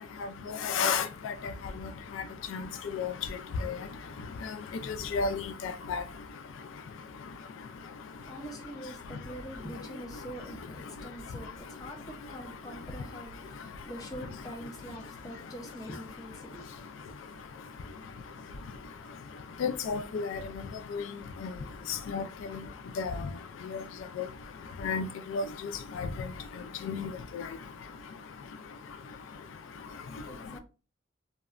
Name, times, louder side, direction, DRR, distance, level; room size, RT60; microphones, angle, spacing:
voice 1, 0.6-1.3 2.5-2.6 2.9-3.1 3.6-3.8 5.1-6.0 19.6-20.4 20.9-21.0 22.1-22.2 23.0-23.1 24.8-25.4 26.0-26.1 26.8-27.4, left 5 dB, 85° left, 0.3 m, -31 dB
voice 2, 8.2-16.6 30.3-30.6, equal, 20° left, 0.5 m, -44 dB
2.8 x 2.1 x 2.4 m
head